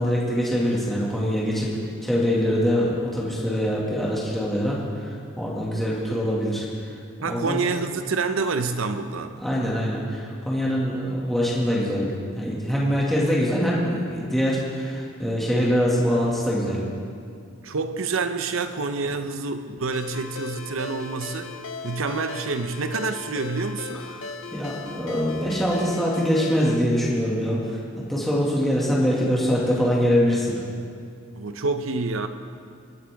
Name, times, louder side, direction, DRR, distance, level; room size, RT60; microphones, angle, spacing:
voice 1, 0.0-1.7 2.0-4.8 5.4-6.7 7.2-7.6 9.4-16.8 24.5-27.8 28.1-30.5, equal, ahead, -6 dB, 2.0 m, -23 dB
voice 2, 7.2-9.4 17.6-21.6 21.8-24.1 31.4-32.3, right 4 dB, 75° right, 9 dB, 0.7 m, -27 dB
Ringtone, 19.9-26.8, left 4 dB, 70° left, 0.8 m, -37 dB
24.0 x 8.5 x 3.5 m, 2.3 s
head